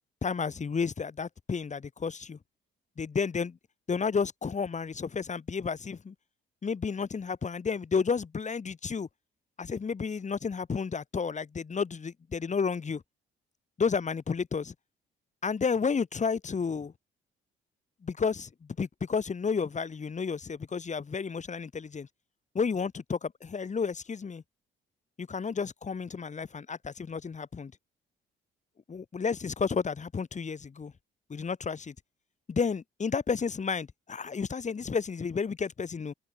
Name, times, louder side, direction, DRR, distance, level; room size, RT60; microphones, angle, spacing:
voice 1, 0.2-2.4 3.0-3.6 3.9-6.1 6.6-9.1 9.6-13.0 13.8-14.7 15.4-16.9 18.0-22.1 22.5-24.4 25.2-27.7 28.9-30.9 31.3-31.9 32.5-36.1, left 5 dB, 35° left, 3.8 m, -31 dB
cardioid pair, 90°, 20 cm